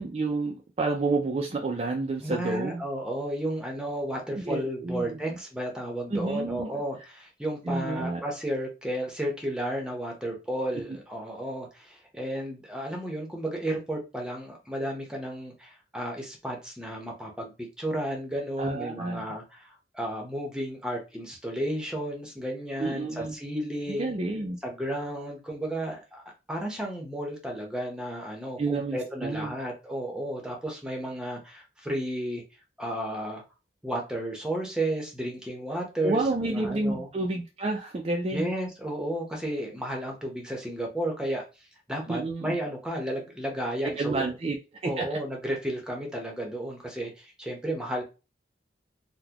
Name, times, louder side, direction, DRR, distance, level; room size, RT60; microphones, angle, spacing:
voice 1, 0.0-2.8 4.4-5.4 6.1-6.8 7.7-8.2 18.6-19.2 22.8-23.3 23.9-24.6 28.6-29.5 36.0-38.5 42.1-42.6 43.8-44.6 44.8-45.2, right 3 dB, 35° right, 2 dB, 0.4 m, -30 dB
voice 2, 2.2-17.5 17.8-24.2 24.6-26.2 26.5-32.4 32.8-33.4 33.8-37.1 38.3-41.4 41.9-44.3 44.8-48.0, right 1 dB, 5° right, 1 dB, 0.8 m, -33 dB
3.9 x 2.2 x 2.9 m, 0.29 s
head